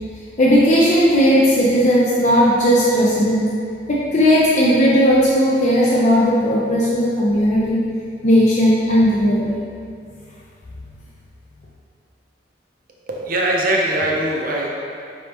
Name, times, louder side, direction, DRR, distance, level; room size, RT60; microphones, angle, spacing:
voice 1, 0.4-3.4 3.9-7.8 8.2-9.5, equal, 40° left, -6 dB, 0.5 m, -16 dB
voice 2, 13.1-14.7, right 1 dB, 50° right, -2 dB, 0.7 m, -21 dB
5.2 x 3.4 x 3.0 m, 2.5 s
head